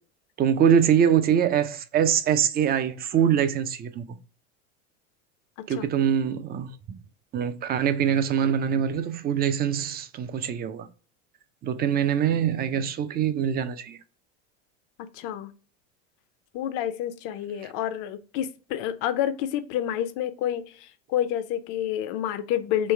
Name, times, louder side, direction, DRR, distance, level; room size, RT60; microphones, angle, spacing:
voice 1, 0.4-4.0 5.7-6.7 7.3-10.9 11.6-14.0, right 8 dB, 25° right, 0.4 m, -23 dB
voice 2, 15.1-15.5 16.5-22.9, left 11 dB, 55° left, 0.6 m, -29 dB
3.2 x 3.1 x 4.4 m
supercardioid pair, 100°, 37 cm